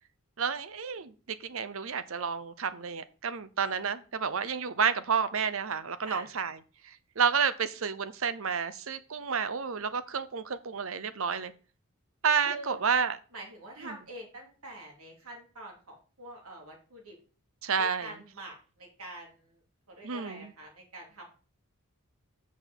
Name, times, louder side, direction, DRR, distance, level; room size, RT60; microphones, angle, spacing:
voice 1, 0.4-1.1 1.4-6.6 6.8-11.5 12.2-13.2 13.8-14.0 17.6-18.2 20.0-20.5, right 6 dB, 70° right, 0.7 m, -30 dB
voice 2, 12.4-12.8 13.3-17.2 17.8-19.6 19.9-21.2, right 1 dB, 90° right, 3.3 m, -45 dB
6.4 x 5.9 x 7.1 m
head